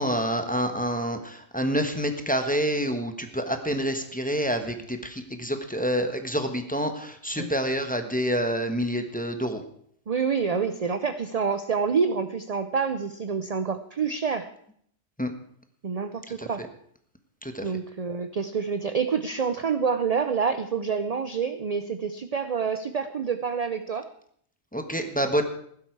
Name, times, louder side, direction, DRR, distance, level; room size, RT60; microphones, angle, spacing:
voice 1, 0.0-9.6 15.2-15.3 16.3-16.7 17.4-17.6 24.7-25.4, equal, 5° left, 6 dB, 1.2 m, -27 dB
voice 2, 10.1-14.5 15.8-16.6 17.6-24.1, right 6 dB, 40° right, 10 dB, 0.6 m, -27 dB
15.0 x 12.0 x 4.7 m, 0.64 s
omnidirectional pair, 1.3 m